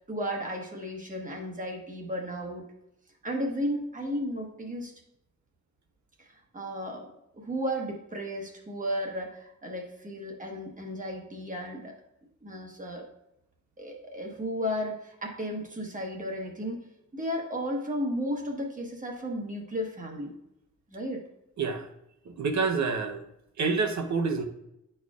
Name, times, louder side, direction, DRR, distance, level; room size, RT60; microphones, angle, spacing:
voice 1, 0.1-2.7 3.2-4.9 6.5-7.1 7.4-11.9 12.4-13.1 13.8-16.8 17.1-20.3 20.9-21.2, equal, 25° right, 1 dB, 1.1 m, -34 dB
voice 2, 22.3-23.2 23.6-24.4, right 4 dB, 75° right, 5 dB, 0.8 m, -27 dB
11.0 x 4.4 x 2.4 m, 0.84 s
wide cardioid pair, 175°, 29 cm